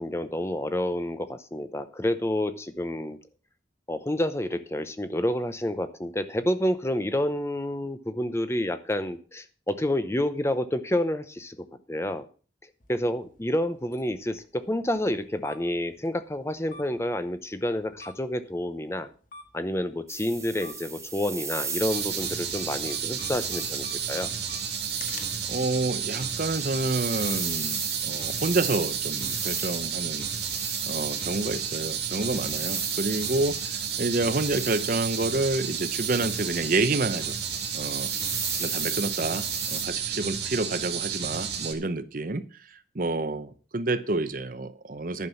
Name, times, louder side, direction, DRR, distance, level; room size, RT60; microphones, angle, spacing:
voice 1, 0.0-3.2 3.9-11.6 11.9-12.2 12.9-19.1 19.5-24.3, left 1 dB, 15° left, 0.7 m, -29 dB
sound 1, 12.8-26.7, left 4 dB, 50° left, 1.7 m, -51 dB
sound 2, 20.1-39.8, right 5 dB, 15° right, 1.6 m, -36 dB
sound 3, 21.8-41.7, right 7 dB, 70° right, 2.0 m, -32 dB
voice 2, 25.5-30.3 30.9-37.4 37.7-38.1 38.6-42.5 42.9-45.3, right 2 dB, 50° right, 0.8 m, -29 dB
11.0 x 6.1 x 7.0 m
head